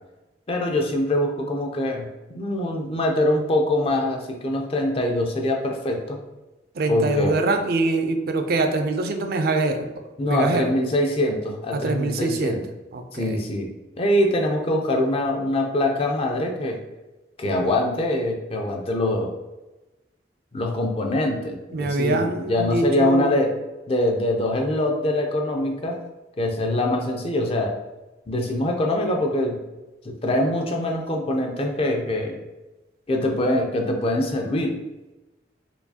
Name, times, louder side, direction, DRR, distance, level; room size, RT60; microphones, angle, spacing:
voice 1, 0.5-6.2 6.9-7.4 10.2-12.7 13.1-16.8 17.4-19.3 20.5-23.6 23.9-26.0 26.4-27.8 28.3-29.6 30.0-32.4 33.1-34.8, left 1 dB, 30° left, 2 dB, 0.4 m, -24 dB
voice 2, 6.8-9.9 10.2-10.7 11.7-12.6 12.9-13.4 21.7-23.4, right 2 dB, 55° right, 6 dB, 0.4 m, -24 dB
4.4 x 2.3 x 2.7 m, 1.1 s
head